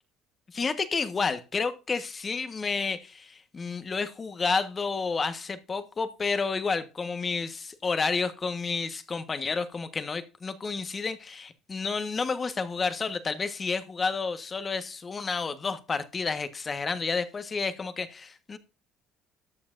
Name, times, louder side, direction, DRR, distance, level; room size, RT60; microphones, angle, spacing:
voice 1, 0.5-18.6, left 4 dB, 30° left, 10 dB, 1.4 m, -30 dB
14.0 x 8.5 x 2.6 m, 0.31 s
cardioid pair, 95°, 0 cm